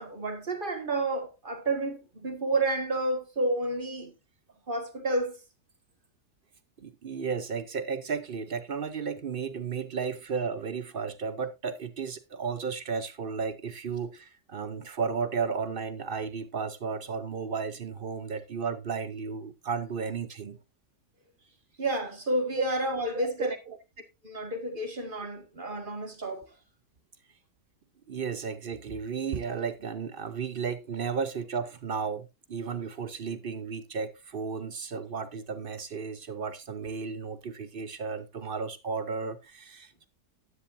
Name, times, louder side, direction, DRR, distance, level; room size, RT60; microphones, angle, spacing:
voice 1, 0.0-4.1 4.7-5.4 21.8-23.6 24.2-26.5, right 2 dB, 30° right, 1.8 m, -30 dB
voice 2, 6.8-20.6 23.2-23.8 28.1-40.1, right 5 dB, 55° right, 0.6 m, -34 dB
12.5 x 10.5 x 2.6 m
omnidirectional pair, 1.7 m